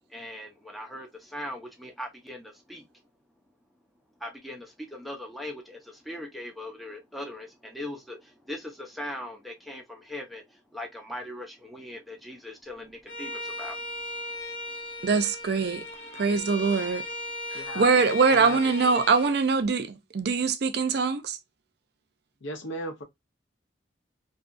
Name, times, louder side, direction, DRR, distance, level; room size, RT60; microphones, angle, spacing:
voice 1, 0.1-2.9 4.2-13.8, left 1 dB, ahead, 0.5 m, -40 dB
Bowed string instrument, 13.1-19.3, left 2 dB, 70° left, 1.1 m, -37 dB
voice 2, 15.0-15.8 16.2-17.0 17.5-21.4, right 4 dB, 55° right, 0.4 m, -23 dB
voice 3, 17.5-17.9 18.3-18.6 22.4-23.0, equal, 90° left, 0.8 m, -36 dB
2.7 x 2.3 x 2.4 m
head